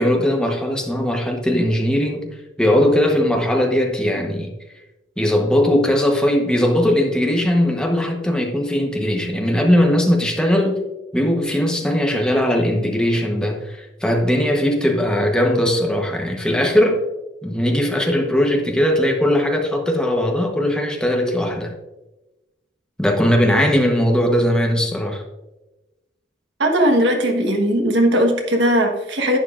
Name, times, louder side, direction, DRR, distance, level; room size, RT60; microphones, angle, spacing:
voice 1, 0.0-4.5 5.2-10.8 11.1-17.0 17.4-21.7 23.0-25.2, left 1 dB, 5° left, 1.0 m, -19 dB
voice 2, 26.6-29.4, equal, 75° right, 1.4 m, -18 dB
11.0 x 9.2 x 2.5 m
head